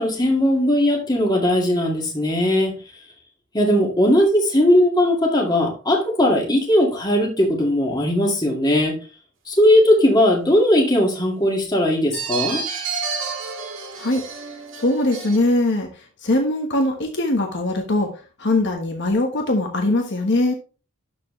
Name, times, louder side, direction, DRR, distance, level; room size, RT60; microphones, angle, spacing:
voice 1, 0.0-2.7 3.5-9.0 9.5-12.6, left 1 dB, 20° left, 2.1 m, -18 dB
sound 1, 12.1-15.4, right 5 dB, 60° right, 1.8 m, -30 dB
voice 2, 14.8-15.9 16.2-18.1 18.4-20.5, left 2 dB, 55° left, 1.3 m, -21 dB
12.5 x 4.6 x 3.2 m
head